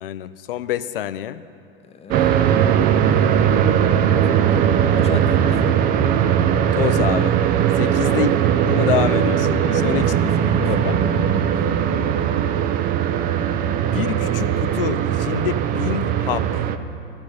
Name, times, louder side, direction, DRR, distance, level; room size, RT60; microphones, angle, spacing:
voice 1, 0.0-1.4 6.8-7.4 7.8-8.3 8.7-10.1 10.6-11.0 13.9-16.7, left 11 dB, 65° left, 14 dB, 0.4 m, -26 dB
voice 2, 1.8-3.3 3.9-5.8 7.8-8.2 9.6-11.5, left 6 dB, 20° left, 7 dB, 0.7 m, -37 dB
sound 1, 2.1-16.8, right 9 dB, 30° right, 0.5 m, -19 dB
12.5 x 5.1 x 8.4 m, 2.5 s
figure-of-eight pair, 85°, 30 cm